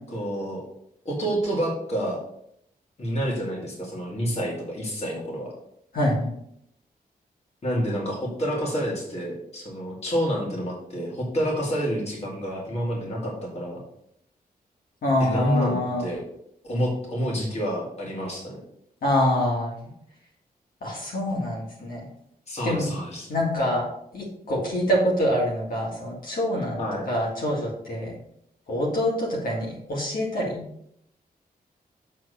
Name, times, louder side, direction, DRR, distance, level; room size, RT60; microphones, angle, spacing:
voice 1, 0.1-0.6 1.0-2.2 3.0-5.5 7.6-13.8 15.2-16.2 16.6-18.6 22.5-23.3 26.8-27.0, equal, 45° left, -2 dB, 2.3 m, -28 dB
voice 2, 5.9-6.3 15.0-16.0 19.0-19.8 20.8-22.1 22.6-23.0 23.3-23.8 24.1-26.8 27.1-28.1 28.7-30.6, left 1 dB, 65° left, -3 dB, 2.1 m, -25 dB
7.5 x 3.7 x 6.5 m, 0.73 s
wide cardioid pair, 150°, 16 cm